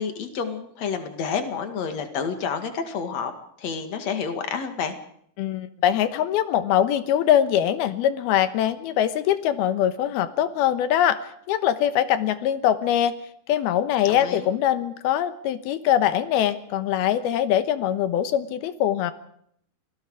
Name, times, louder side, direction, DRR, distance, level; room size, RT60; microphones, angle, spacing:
voice 1, 0.0-3.3 3.6-4.9 14.0-14.5, left 6 dB, 50° left, 7 dB, 2.8 m, -29 dB
voice 2, 5.4-11.2 11.5-13.1 13.5-19.1, left 10 dB, 85° left, 12 dB, 3.1 m, -22 dB
29.0 x 18.5 x 4.9 m, 0.69 s
omnidirectional pair, 4.4 m